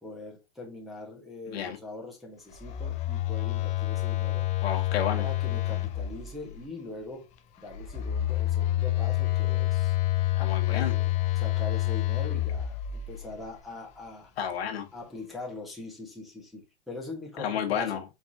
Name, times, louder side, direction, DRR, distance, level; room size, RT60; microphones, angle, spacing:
voice 1, 0.0-4.5 5.1-7.3 7.6-10.0 10.6-14.3 14.9-18.0, left 2 dB, ahead, 1.3 m, -42 dB
Telephone, 2.5-6.6 7.7-13.4, left 14 dB, 25° left, 0.4 m, -28 dB
voice 2, 4.6-5.2 10.3-11.0 14.4-14.9 17.4-18.0, left 8 dB, 80° left, 1.3 m, -31 dB
4.7 x 3.6 x 2.7 m
supercardioid pair, 145°, 31 cm